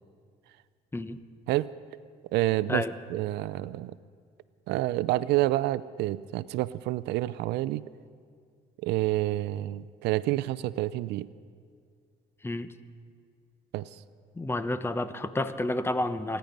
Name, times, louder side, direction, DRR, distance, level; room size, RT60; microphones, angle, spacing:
voice 1, 2.3-2.8 3.1-3.9 4.7-7.8 8.8-11.3 13.7-13.9, right 16 dB, 85° right, 18 dB, 0.4 m, -28 dB
voice 2, 14.4-16.4, left 1 dB, 15° left, 11 dB, 0.8 m, -30 dB
25.0 x 10.5 x 5.3 m, 2.1 s
cardioid pair, 110°, 17 cm